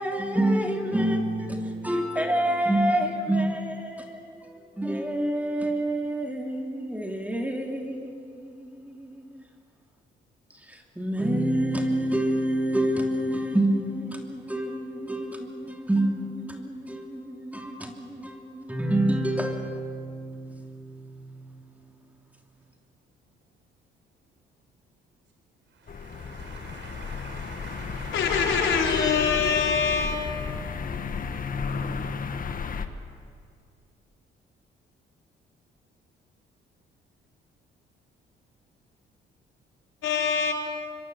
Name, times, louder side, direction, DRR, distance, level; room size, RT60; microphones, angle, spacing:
voice 1, 0.0-9.4 10.7-21.6, right 1 dB, 5° right, 3 dB, 3.0 m, -28 dB
voice 2, 25.7-29.6, right 4 dB, 65° right, 4 dB, 5.9 m, -45 dB
sound 1, 25.9-32.9, left 5 dB, 45° left, 1.6 m, -33 dB
voice 3, 28.1-30.4 40.0-40.5, left 6 dB, 75° left, 1 dB, 4.8 m, -24 dB
25.0 x 23.5 x 7.8 m, 2.3 s
cardioid pair, 90°, 20 cm